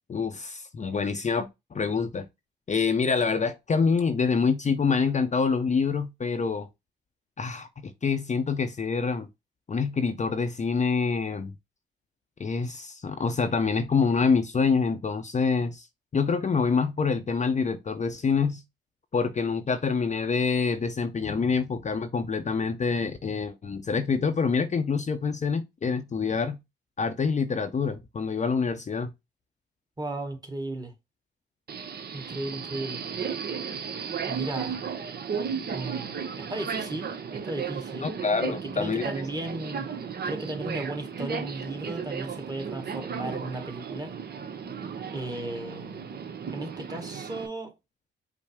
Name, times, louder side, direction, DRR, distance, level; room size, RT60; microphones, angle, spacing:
voice 1, 0.1-2.3 2.7-6.7 7.4-9.3 9.7-11.5 12.4-15.9 16.1-18.6 19.1-26.6 27.0-29.1 38.0-39.0, left 5 dB, 35° left, 0.6 m, -26 dB
voice 2, 30.0-30.9 32.1-33.0 34.3-34.8 35.7-38.1 38.5-39.9 40.2-44.1 45.1-46.1 46.5-47.8, right 2 dB, 20° right, 1.3 m, -35 dB
Subway metro underground, 31.7-47.5, right 6 dB, 50° right, 0.8 m, -35 dB
5.5 x 2.0 x 4.8 m
cardioid pair, 80°, 21 cm